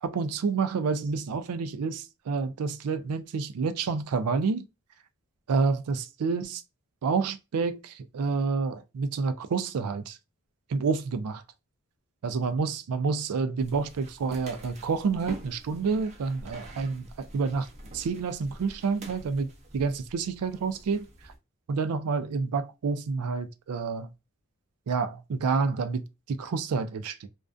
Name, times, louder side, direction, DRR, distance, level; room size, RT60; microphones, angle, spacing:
voice 1, 0.0-4.6 5.5-6.6 7.0-10.2 10.7-11.4 12.2-17.7 17.9-19.5 19.7-21.0 21.7-24.1 24.9-27.3, right 4 dB, 85° right, 0.4 m, -29 dB
sound 1, 13.6-21.4, right 1 dB, 30° right, 0.5 m, -46 dB
2.5 x 2.2 x 2.2 m
head